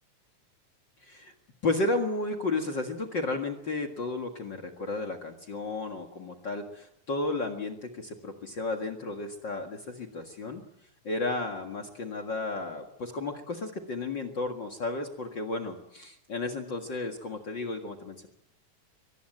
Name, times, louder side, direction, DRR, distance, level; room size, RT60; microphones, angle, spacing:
voice 1, 1.0-1.3 1.6-10.6 11.0-18.3, left 2 dB, 40° left, 4 dB, 2.2 m, -33 dB
24.0 x 19.5 x 7.9 m, 0.78 s
omnidirectional pair, 3.4 m